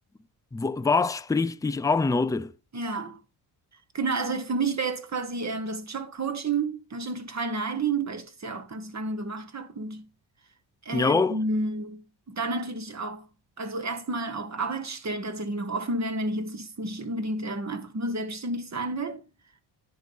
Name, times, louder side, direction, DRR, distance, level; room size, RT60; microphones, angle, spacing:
voice 1, 0.5-2.5 10.9-11.4, left 4 dB, 10° left, 0.4 m, -24 dB
voice 2, 2.7-3.2 3.9-10.1 10.8-13.3 13.6-19.2, right 3 dB, 35° right, 1.3 m, -31 dB
10.0 x 3.9 x 5.6 m
cardioid pair, 85°, 50 cm